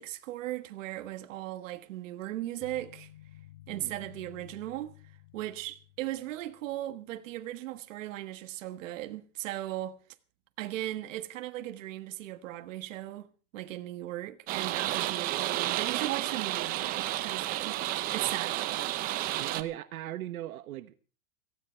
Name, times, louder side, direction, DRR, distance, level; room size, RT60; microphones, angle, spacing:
voice 1, 0.0-3.1 3.7-4.9 5.3-10.0 10.6-13.3 13.5-17.8 18.1-18.8, right 15 dB, 65° right, 1.6 m, -37 dB
sound 1, 2.6-6.8, left 13 dB, 40° left, 3.1 m, -53 dB
sound 2, 14.5-19.6, right 15 dB, 20° right, 0.7 m, -31 dB
voice 2, 19.3-20.9, right 13 dB, 85° right, 1.2 m, -39 dB
17.5 x 15.5 x 4.5 m
supercardioid pair, 170°, 42 cm